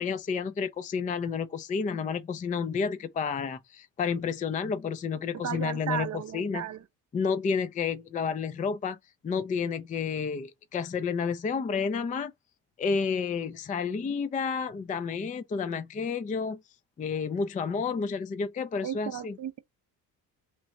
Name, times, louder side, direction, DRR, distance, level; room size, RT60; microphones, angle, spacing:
voice 1, 0.0-6.7 7.1-9.0 9.2-12.3 12.8-16.6 17.0-19.4, left 5 dB, 20° left, 0.4 m, -30 dB
voice 2, 5.4-6.8 18.8-19.6, right 9 dB, 40° right, 0.6 m, -34 dB
3.2 x 2.4 x 4.0 m
hypercardioid pair, 65°, 46 cm